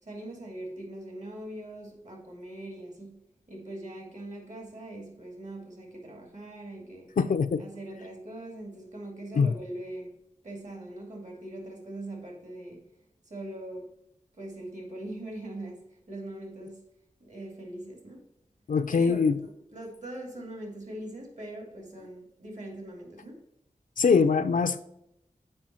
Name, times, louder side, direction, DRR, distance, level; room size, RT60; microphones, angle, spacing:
voice 1, 0.0-3.2 3.5-7.1 7.6-10.1 10.4-12.8 13.2-13.9 14.3-16.8 17.2-18.2 18.9-23.4, right 1 dB, 60° right, 1 dB, 2.5 m, -41 dB
voice 2, 7.2-7.6 9.4-9.5 18.7-19.4 24.0-24.8, left 5 dB, 75° left, 9 dB, 0.5 m, -23 dB
7.6 x 5.3 x 4.3 m, 0.79 s
wide cardioid pair, 65°, 14 cm